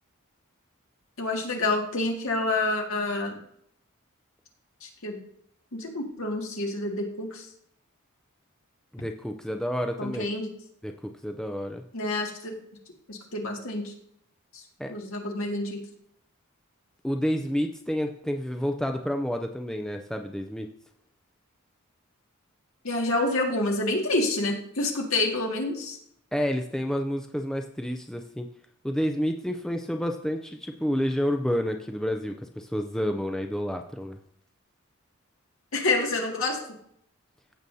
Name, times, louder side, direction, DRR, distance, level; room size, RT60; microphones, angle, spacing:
voice 1, 1.2-3.4 4.8-5.2 5.7-7.5 10.0-10.5 11.9-12.5 13.1-13.9 14.5-14.6 14.9-15.8 22.8-26.0 35.7-36.6, left 2 dB, 65° left, 0 dB, 2.0 m, -28 dB
voice 2, 8.9-10.3 10.8-11.8 14.8-14.9 17.0-20.7 26.3-28.5 28.8-34.2, equal, 5° left, 4 dB, 0.4 m, -29 dB
15.5 x 6.9 x 2.7 m, 0.69 s
head